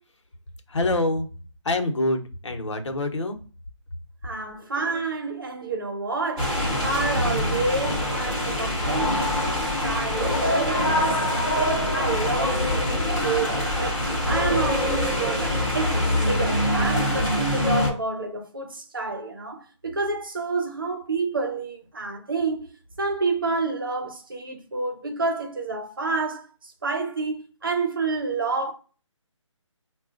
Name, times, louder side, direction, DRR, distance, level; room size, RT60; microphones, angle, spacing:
voice 1, 0.7-1.3 1.6-3.4, left 2 dB, 65° left, 1.1 m, -25 dB
voice 2, 4.2-6.6 6.8-15.9 16.3-22.7 23.0-26.4 26.8-28.7, right 3 dB, 45° right, 0.8 m, -29 dB
sound 1, 6.4-17.9, left 1 dB, ahead, 1.0 m, -24 dB
5.5 x 2.4 x 2.5 m
hypercardioid pair, 175°, 17 cm